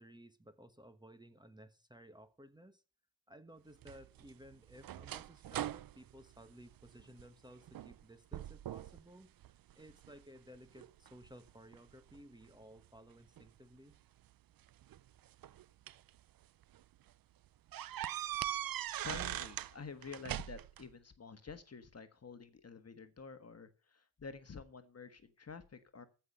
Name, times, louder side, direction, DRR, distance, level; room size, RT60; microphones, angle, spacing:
voice 1, 0.0-2.8 3.3-9.3 9.7-13.9, equal, 10° right, 10 dB, 1.3 m, -57 dB
sound 1, 3.8-7.3 7.7-8.0 8.3-9.0 9.4-10.2 10.8-12.2 13.4-13.5 14.7-16.1 16.6-16.8 17.1-17.2 17.7-19.7 20.0-20.8, right 12 dB, 50° right, 0.5 m, -41 dB
voice 2, 19.0-26.1, left 5 dB, 35° left, 10 dB, 1.5 m, -49 dB
14.5 x 5.9 x 6.6 m, 0.35 s
cardioid pair, 90°, 45 cm